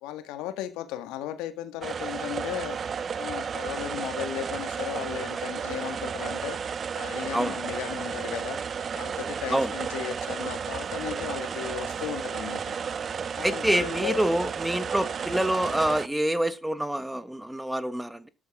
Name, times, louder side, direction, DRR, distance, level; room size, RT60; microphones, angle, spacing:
voice 1, 0.0-2.8 3.2-8.6 8.9-12.7 13.4-14.3, left 12 dB, 70° left, 1.7 m, -36 dB
sound 1, 1.8-16.1, right 6 dB, 45° right, 0.8 m, -33 dB
voice 2, 13.4-18.3, right 1 dB, 10° right, 1.5 m, -26 dB
13.5 x 11.0 x 3.7 m
hypercardioid pair, 50°, 0 cm